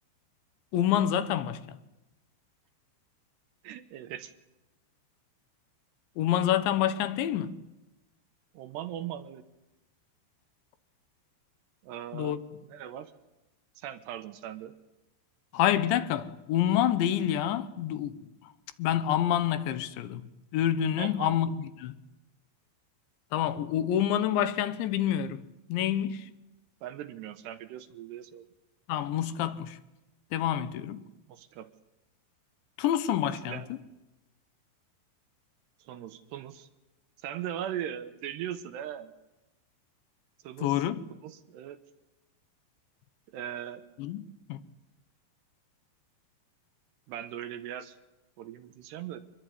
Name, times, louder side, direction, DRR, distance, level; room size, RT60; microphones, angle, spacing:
voice 1, 0.7-1.8 6.2-7.6 12.1-12.4 15.5-18.5 18.8-20.3 20.5-21.9 23.3-25.4 25.7-26.3 28.9-29.8 30.3-31.0 32.8-33.6 40.6-41.0 44.0-44.2 44.5-44.6, left 11 dB, 75° left, 3.3 m, -27 dB
voice 2, 3.6-4.3 8.5-9.4 11.8-12.4 12.7-13.1 13.8-14.7 21.0-21.4 26.8-28.5 31.3-31.7 33.4-33.7 35.8-36.7 37.2-39.1 40.4-40.8 41.1-41.8 43.3-43.8 47.1-48.0 48.4-49.2, right 10 dB, 70° right, 3.0 m, -39 dB
25.5 x 21.5 x 9.4 m
omnidirectional pair, 5.4 m